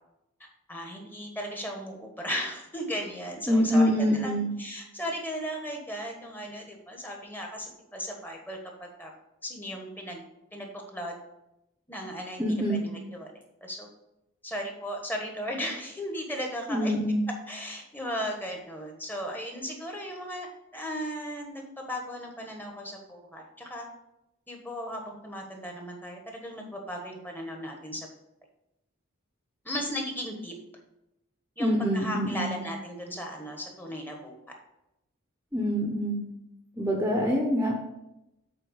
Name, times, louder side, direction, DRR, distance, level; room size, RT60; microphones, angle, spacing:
voice 1, 0.4-9.1 9.4-10.2 10.5-11.1 11.9-13.3 13.6-13.9 14.4-16.9 17.5-23.9 24.5-28.1 29.6-30.5 31.6-34.4, equal, 10° left, 1 dB, 1.2 m, -36 dB
voice 2, 3.5-4.5 12.4-12.8 16.7-17.2 31.6-32.5 35.5-36.3 36.8-37.8, equal, 10° right, 0 dB, 0.9 m, -25 dB
7.8 x 4.3 x 6.3 m, 0.89 s
head